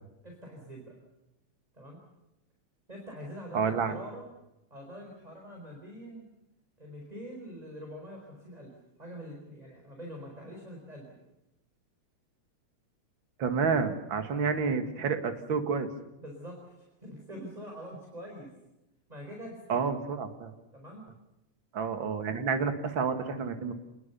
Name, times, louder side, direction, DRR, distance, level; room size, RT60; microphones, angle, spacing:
voice 1, 0.2-1.0 1.7-2.0 2.9-4.3 4.7-6.2 6.8-8.7 9.0-11.1 16.2-18.5 19.1-19.9 20.7-21.0, equal, 10° right, 1 dB, 4.4 m, -44 dB
voice 2, 3.5-4.0 13.4-15.9 19.7-20.5 21.7-23.7, right 5 dB, 45° right, 7 dB, 2.4 m, -29 dB
28.5 x 20.5 x 7.0 m, 0.94 s
omnidirectional pair, 3.3 m